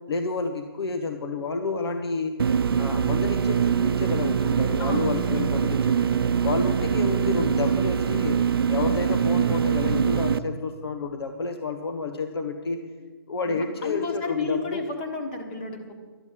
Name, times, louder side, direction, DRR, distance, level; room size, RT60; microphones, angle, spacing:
voice 1, 0.1-2.4 2.8-6.0 6.4-8.4 8.7-12.8 13.3-14.8, left 4 dB, 85° left, 6 dB, 1.3 m, -30 dB
sound 1, 2.4-10.4, right 7 dB, 70° right, 0.6 m, -23 dB
voice 2, 4.8-5.4 13.5-15.9, left 3 dB, 25° left, 3 dB, 1.5 m, -32 dB
12.0 x 7.3 x 9.7 m, 1.4 s
hypercardioid pair, 170°, 13 cm